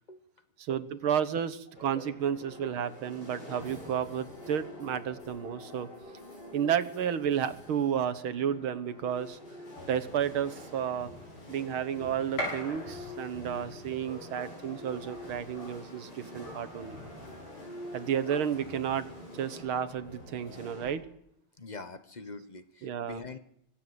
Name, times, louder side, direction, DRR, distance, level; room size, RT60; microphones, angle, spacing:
voice 1, 0.6-5.9 6.5-9.4 9.9-11.1 11.5-17.0 17.9-19.1 19.3-21.1 22.8-23.2, right 8 dB, 75° right, 12 dB, 2.1 m, -32 dB
sound 1, 1.7-20.9, left 1 dB, 50° left, 7.7 m, -47 dB
Gunshot gunfire, 9.6-19.6, equal, 75° left, 8.3 m, -45 dB
voice 2, 21.6-23.4, left 3 dB, 25° left, 11 dB, 1.0 m, -44 dB
25.0 x 18.5 x 8.1 m, 0.76 s
omnidirectional pair, 2.3 m